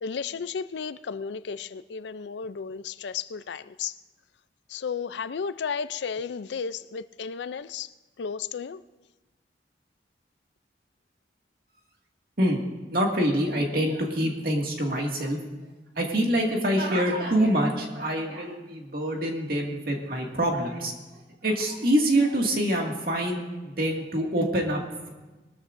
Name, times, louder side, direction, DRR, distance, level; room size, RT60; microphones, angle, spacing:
voice 1, 0.0-4.0 4.7-7.9 8.2-8.8, left 6 dB, 80° left, 15 dB, 0.4 m, -33 dB
voice 2, 12.9-15.4 16.0-20.9 21.4-25.1, right 1 dB, 55° right, 0 dB, 2.1 m, -25 dB
21.5 x 13.5 x 2.6 m, 1.2 s
head